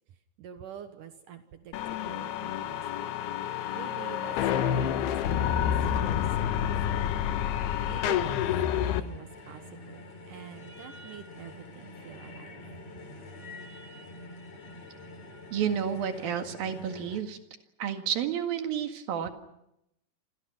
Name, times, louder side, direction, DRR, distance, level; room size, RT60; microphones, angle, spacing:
voice 1, 0.4-3.1 3.7-7.3 7.6-12.6, right 9 dB, 90° right, 8 dB, 1.8 m, -47 dB
sound 1, 1.7-9.0, left 10 dB, 70° left, 2.8 m, -28 dB
sound 2, 8.9-17.2, left 2 dB, 35° left, 4.7 m, -46 dB
voice 2, 15.5-17.4 17.8-19.3, right 8 dB, 60° right, 6 dB, 3.2 m, -30 dB
27.5 x 27.5 x 6.1 m, 0.82 s
omnidirectional pair, 5.7 m